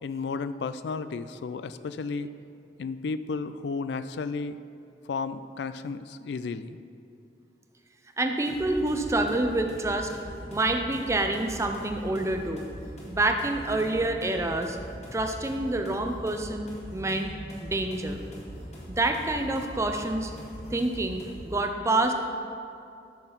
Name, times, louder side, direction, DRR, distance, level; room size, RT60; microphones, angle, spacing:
voice 1, 0.0-2.3 2.8-4.6 5.1-6.8, left 4 dB, 75° left, 13 dB, 0.3 m, -33 dB
voice 2, 8.2-10.1 10.5-12.6 13.1-14.8 15.1-17.3 17.6-18.2 18.9-20.3 20.7-22.1, right 2 dB, 15° right, 5 dB, 0.5 m, -27 dB
sound 1, 8.5-21.6, equal, 40° left, 2.0 m, -42 dB
13.0 x 5.9 x 3.9 m, 2.5 s
head